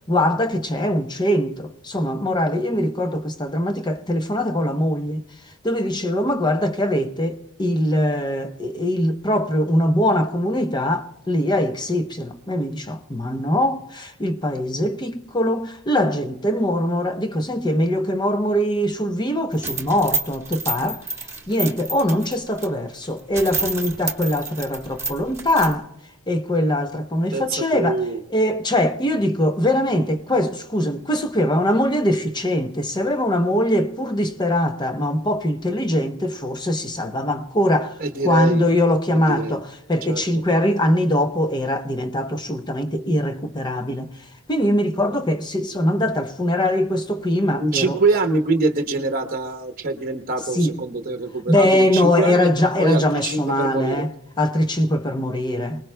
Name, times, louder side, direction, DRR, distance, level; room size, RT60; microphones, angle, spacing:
voice 1, 0.1-5.2 5.6-25.9 26.3-28.0 28.3-48.0 50.5-50.8 51.5-54.1 54.4-55.8, left 1 dB, 20° left, 0.7 m, -22 dB
sound 1, 19.5-22.7 23.0-23.1 23.3-25.7, right 3 dB, 15° right, 1.3 m, -29 dB
voice 2, 27.3-28.2 38.0-38.7 39.1-39.6 40.0-40.2 47.6-52.5 52.8-54.1, right 3 dB, 40° right, 1.0 m, -24 dB
28.0 x 19.5 x 2.2 m
head